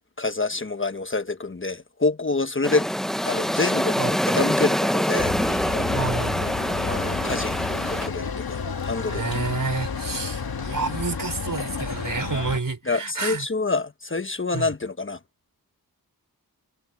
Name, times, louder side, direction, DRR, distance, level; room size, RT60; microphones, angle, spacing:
voice 1, 0.2-2.9 3.2-5.3 6.8-7.6 7.9-9.5 12.8-15.2, left 3 dB, 35° left, 1.2 m, -27 dB
sound 1, 2.6-8.1, equal, ahead, 0.6 m, -25 dB
voice 2, 4.0-4.4 5.9-6.4 9.1-13.5 14.5-14.7, right 4 dB, 60° right, 4.6 m, -29 dB
sound 2, 5.2-12.6, left 5 dB, 70° left, 1.7 m, -31 dB
wide cardioid pair, 65°, 37 cm